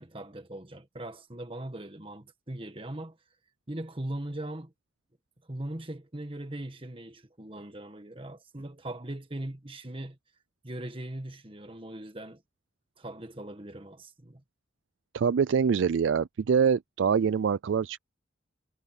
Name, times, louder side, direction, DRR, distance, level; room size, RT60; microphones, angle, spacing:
voice 1, 0.0-3.2 3.7-4.7 5.5-10.2 10.6-12.4 13.0-14.4, right 1 dB, 30° right, 1.7 m, -40 dB
voice 2, 15.1-18.0, right 6 dB, 85° right, 0.4 m, -25 dB
head